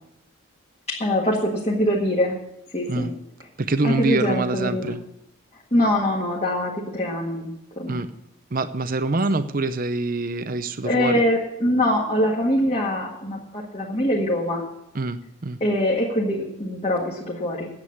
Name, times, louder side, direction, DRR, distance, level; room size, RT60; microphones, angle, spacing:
voice 1, 0.9-2.4 2.7-3.1 3.8-4.9 5.7-8.0 10.8-14.6 15.6-17.7, left 1 dB, 30° left, -4 dB, 1.8 m, -23 dB
voice 2, 3.6-5.0 7.9-8.1 8.5-11.2 14.9-15.6, right 3 dB, 40° right, 11 dB, 0.6 m, -25 dB
9.6 x 8.2 x 9.4 m, 0.82 s
head